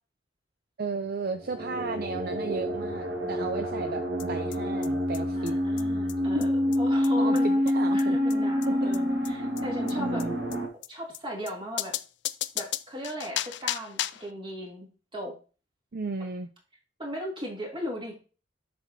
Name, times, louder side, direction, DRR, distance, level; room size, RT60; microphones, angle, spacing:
voice 1, 0.8-5.5 6.2-6.4 7.2-8.2 8.7-9.0 9.9-10.3 15.9-16.5, right 4 dB, 55° right, 8 dB, 0.5 m, -34 dB
sound 1, 1.3-10.7, left 1 dB, 75° right, 1.8 m, -27 dB
sound 2, 4.2-4.3 4.5-4.6 4.8-4.9 5.1-5.2 5.5-5.6 5.8-5.9 6.1-6.2 6.4-6.5 6.7-6.8 7.0-7.1 7.4-7.5 7.7-7.8 8.0-8.1 8.3-8.4 8.6-8.7 8.9-9.0 9.2-9.3 9.6-9.7 9.9-10.0 10.2-10.3 10.5-10.6 10.8-10.9 11.1-11.2 11.5-11.6 11.8-14.3, left 13 dB, 65° left, 0.4 m, -34 dB
voice 2, 5.3-7.5 7.9-10.2 10.9-11.9 12.5-15.3 17.0-18.2, equal, 30° right, -1 dB, 2.7 m, -37 dB
7.8 x 6.3 x 2.7 m, 0.34 s
head